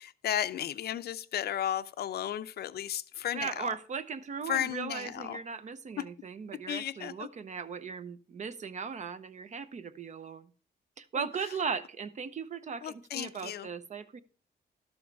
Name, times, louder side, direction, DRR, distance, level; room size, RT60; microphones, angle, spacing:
voice 1, 0.0-3.7 4.5-5.4 6.0-6.1 6.7-7.3 12.8-13.7, left 11 dB, 65° left, 0.5 m, -34 dB
voice 2, 3.3-10.5 11.0-14.2, right 6 dB, 45° right, 0.7 m, -38 dB
12.0 x 7.1 x 4.6 m
cardioid pair, 135°, 18 cm